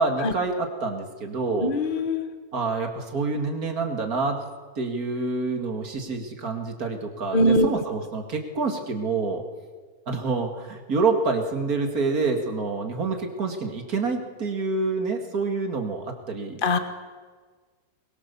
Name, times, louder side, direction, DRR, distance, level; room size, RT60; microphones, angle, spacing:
voice 1, 0.0-1.7 2.5-4.4 4.8-9.4 10.1-16.6, right 3 dB, 80° right, 4 dB, 2.7 m, -27 dB
voice 2, 1.6-2.3 7.3-7.7 16.6-16.8, left 1 dB, 40° left, 8 dB, 1.3 m, -21 dB
23.0 x 22.0 x 7.0 m, 1.5 s
omnidirectional pair, 1.5 m